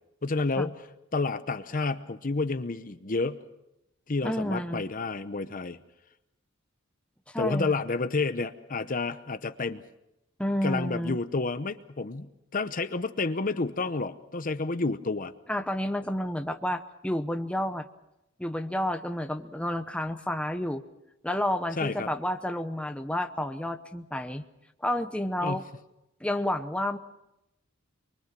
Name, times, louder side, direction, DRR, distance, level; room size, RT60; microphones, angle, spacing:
voice 1, 0.2-0.8 1.1-3.4 4.1-5.8 7.4-9.8 10.6-15.3 21.8-22.1 25.4-25.6, left 3 dB, 40° left, 11 dB, 0.8 m, -30 dB
voice 2, 4.2-4.8 7.3-7.7 10.4-11.2 15.5-17.9 18.4-20.8 21.2-24.4 24.8-25.6 26.2-27.0, left 1 dB, 5° left, 7 dB, 0.9 m, -30 dB
24.5 x 23.5 x 6.1 m, 0.87 s
head